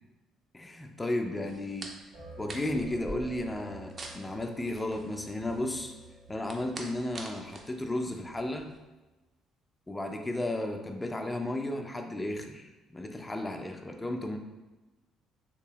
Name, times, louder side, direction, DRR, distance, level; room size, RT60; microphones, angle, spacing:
voice 1, 0.5-1.9 2.4-5.9 6.3-8.7 9.9-14.4, left 1 dB, 15° left, 4 dB, 0.4 m, -34 dB
sound 1, 1.5-8.8, right 2 dB, 40° right, 0.5 m, -46 dB
sound 2, 2.1-8.7, right 2 dB, 70° right, 1.0 m, -51 dB
3.2 x 2.8 x 2.9 m, 1.1 s
figure-of-eight pair, 50°, 0 cm